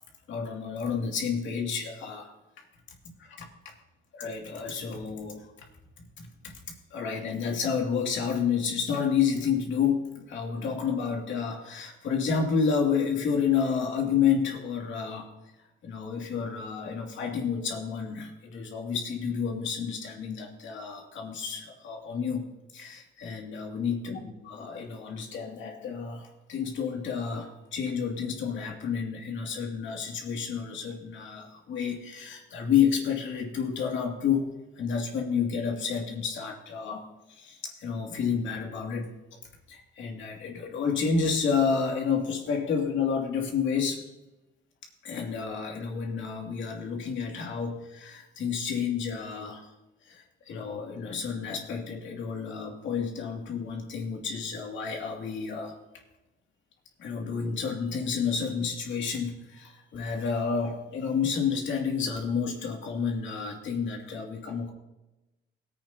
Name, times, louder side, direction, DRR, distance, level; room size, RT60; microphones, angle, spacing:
voice 1, 0.3-2.3 3.2-3.5 4.1-5.5 6.2-6.5 6.9-15.3 15.8-22.5 22.7-39.4 39.7-44.1 45.0-49.7 50.0-55.8 57.0-64.7, left 6 dB, 70° left, 1 dB, 2.5 m, -30 dB
18.5 x 8.5 x 2.9 m, 0.99 s
cardioid pair, 90°, 20 cm